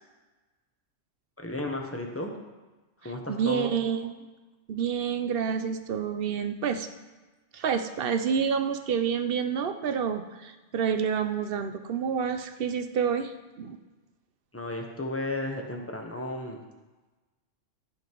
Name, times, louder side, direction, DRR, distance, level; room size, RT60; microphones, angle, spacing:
voice 1, 1.4-2.3 3.0-3.7 14.5-16.6, left 2 dB, 10° left, 2 dB, 1.1 m, -33 dB
voice 2, 3.3-4.3 4.7-6.9 7.5-13.8, right 7 dB, 55° right, 8 dB, 0.8 m, -28 dB
14.5 x 5.7 x 4.6 m, 1.2 s
omnidirectional pair, 1.3 m